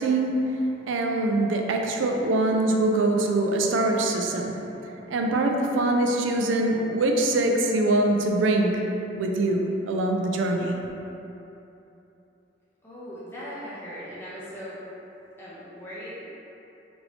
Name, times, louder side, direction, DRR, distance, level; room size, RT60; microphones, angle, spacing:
voice 1, 0.0-4.6 5.1-8.9 9.2-10.8, right 2 dB, 90° right, 2 dB, 0.4 m, -23 dB
voice 2, 12.8-14.8 15.4-16.3, equal, 15° left, -10 dB, 0.5 m, -39 dB
3.0 x 2.6 x 3.1 m, 3.0 s
head